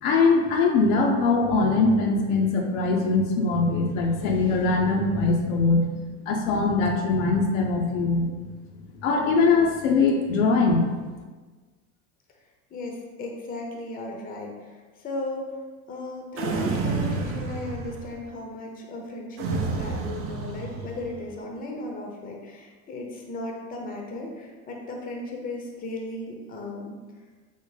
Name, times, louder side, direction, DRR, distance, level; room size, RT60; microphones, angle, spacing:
voice 1, 0.0-5.8 6.2-8.3 9.0-10.9, left 3 dB, 80° left, 1 dB, 0.6 m, -22 dB
voice 2, 12.7-14.5 15.0-15.5 15.9-27.0, left 2 dB, 20° left, 1 dB, 0.5 m, -35 dB
sound 1, 16.4-18.2 19.4-21.2, right 4 dB, 35° right, 0.4 m, -30 dB
3.6 x 2.1 x 3.1 m, 1.4 s
supercardioid pair, 95°, 40 cm